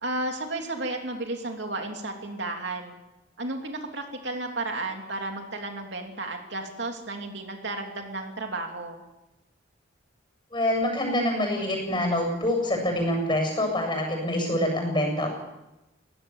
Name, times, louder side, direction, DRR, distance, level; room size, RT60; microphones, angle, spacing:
voice 1, 0.0-2.9 3.4-9.0, right 2 dB, 65° right, 3 dB, 3.0 m, -33 dB
voice 2, 10.5-15.3, left 1 dB, 25° left, 3 dB, 7.3 m, -26 dB
23.0 x 18.0 x 7.3 m, 0.97 s
head